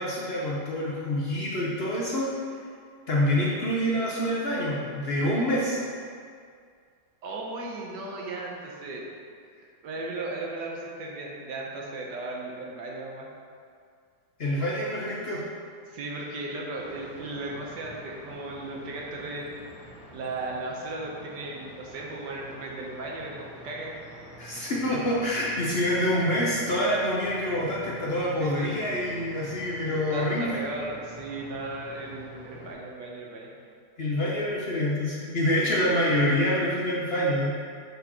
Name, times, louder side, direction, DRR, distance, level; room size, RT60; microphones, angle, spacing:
voice 1, 0.0-2.3 3.1-5.8 14.4-15.4 24.4-30.6 34.0-37.6, left 1 dB, 50° left, -5 dB, 0.8 m, -26 dB
voice 2, 7.2-9.1 9.8-13.3 15.8-19.5 20.1-23.9 28.4-28.7 29.9-33.5 35.7-35.8, right 2 dB, 85° right, -2 dB, 1.6 m, -36 dB
sound 1, 16.7-32.7, right 1 dB, ahead, 1.4 m, -48 dB
6.8 x 6.2 x 3.0 m, 2.2 s
omnidirectional pair, 1.8 m